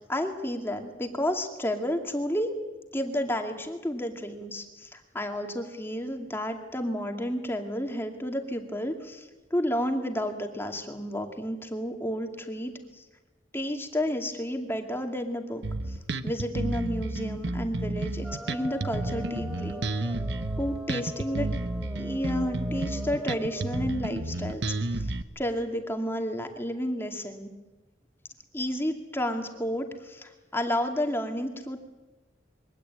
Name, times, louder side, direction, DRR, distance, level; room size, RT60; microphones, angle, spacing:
voice 1, 0.1-2.5 2.9-13.0 13.5-16.0 16.2-19.8 20.6-21.5 22.0-25.1 25.4-27.5 28.5-31.8, equal, 15° left, 4 dB, 2.3 m, -31 dB
Bass guitar, 15.6-25.2, right 2 dB, 70° right, 1.0 m, -31 dB
sound 1, 18.2-23.9, equal, 5° right, 1.6 m, -42 dB
23.0 x 17.0 x 9.8 m, 1.2 s
head